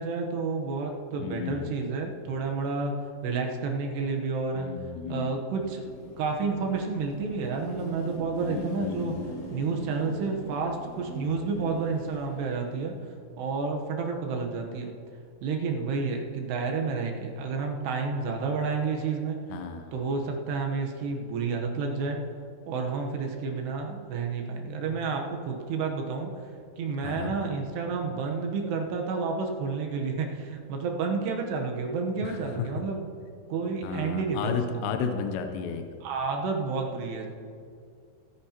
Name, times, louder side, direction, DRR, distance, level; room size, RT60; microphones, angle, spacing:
voice 1, 0.0-2.9 3.2-4.7 5.1-5.8 6.2-9.2 9.5-13.0 13.4-14.9 15.4-19.4 19.9-22.2 22.7-26.3 26.8-33.0 33.5-34.6 36.0-37.3, right 4 dB, 70° right, 2 dB, 3.0 m, -30 dB
voice 2, 1.2-1.7 4.6-5.3 8.4-9.3 19.5-19.9 27.0-27.4 32.2-32.7 33.8-35.8, left 6 dB, 80° left, 5 dB, 2.7 m, -33 dB
Car passing by / Traffic noise roadway noise / Engine, 5.6-13.0, left 1 dB, 50° left, 2.9 m, -42 dB
24.5 x 9.4 x 2.9 m, 2.3 s
omnidirectional pair, 5.3 m